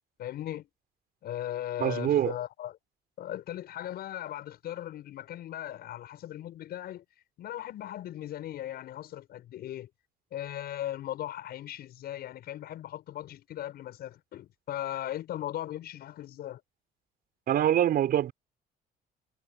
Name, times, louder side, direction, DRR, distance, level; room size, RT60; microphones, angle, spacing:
voice 1, 0.2-0.7 1.2-2.8 3.2-7.0 7.4-9.9 10.3-16.6, left 12 dB, 70° left, 8.0 m, -38 dB
voice 2, 1.8-2.3 17.5-18.3, right 11 dB, 60° right, 5.6 m, -24 dB
cardioid pair, 110°, 17 cm